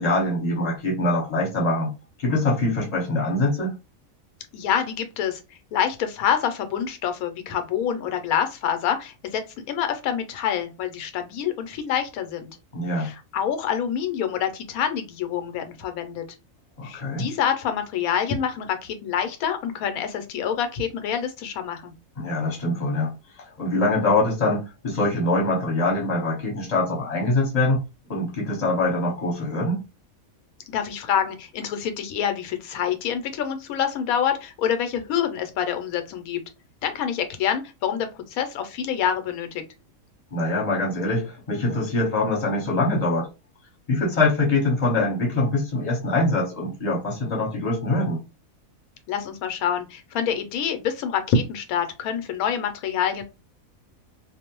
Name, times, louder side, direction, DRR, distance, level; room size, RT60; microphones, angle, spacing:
voice 1, 0.0-1.9 2.2-3.8 12.7-13.1 16.8-17.3 22.2-23.1 23.6-27.8 28.1-29.8 40.3-43.3 43.9-48.2, left 2 dB, 30° left, 1.0 m, -23 dB
voice 2, 4.5-5.4 5.7-12.5 13.0-16.2 16.8-21.9 30.7-36.4 36.8-39.6 49.1-53.2, left 8 dB, 85° left, 1.0 m, -26 dB
2.5 x 2.0 x 2.9 m
omnidirectional pair, 1.5 m